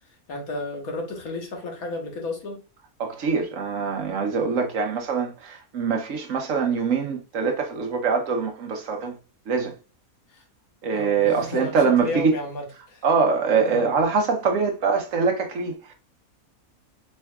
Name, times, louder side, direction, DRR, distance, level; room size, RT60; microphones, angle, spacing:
voice 1, 0.3-2.6 10.3-10.4 10.9-13.0 13.6-13.9, left 2 dB, 70° left, 1.7 m, -33 dB
voice 2, 3.0-9.1 9.5-9.8 10.8-12.3 13.0-15.9, right 5 dB, 65° right, 1.1 m, -23 dB
4.4 x 4.3 x 2.3 m
omnidirectional pair, 1.5 m